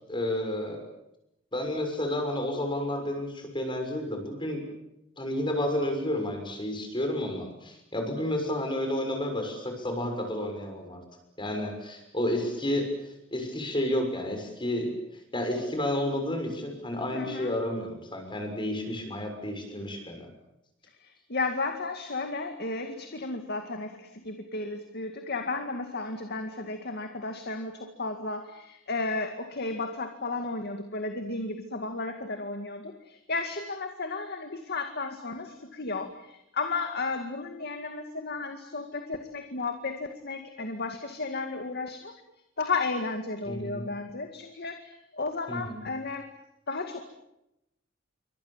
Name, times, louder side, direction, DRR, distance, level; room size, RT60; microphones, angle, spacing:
voice 1, 0.1-0.8 1.5-4.6 5.2-11.0 11.4-20.3 43.4-43.8 45.5-45.8, left 1 dB, 25° left, 4 dB, 6.7 m, -31 dB
voice 2, 17.1-17.5 21.0-42.1 42.6-46.3 46.7-47.0, left 3 dB, 55° left, 6 dB, 2.1 m, -33 dB
28.0 x 25.0 x 7.5 m, 0.87 s
head